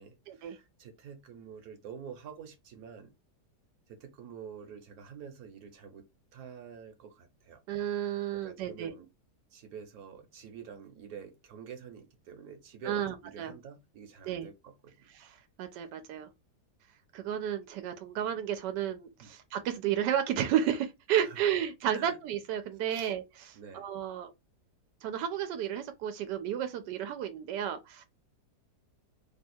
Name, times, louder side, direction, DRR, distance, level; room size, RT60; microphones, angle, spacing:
voice 1, 0.0-3.1 3.9-6.0 6.3-7.6 8.3-9.1 9.5-14.9 15.7-15.8 19.2-19.3 21.2-21.4 21.9-22.2 22.9-23.1 23.5-23.8, right 7 dB, 65° right, 1.2 m, -47 dB
voice 2, 7.7-8.9 12.8-13.5 14.2-14.5 15.2-16.3 17.1-23.2 23.7-24.3 25.0-28.1, right 10 dB, 90° right, 1.2 m, -32 dB
3.2 x 2.3 x 4.2 m
omnidirectional pair, 1.8 m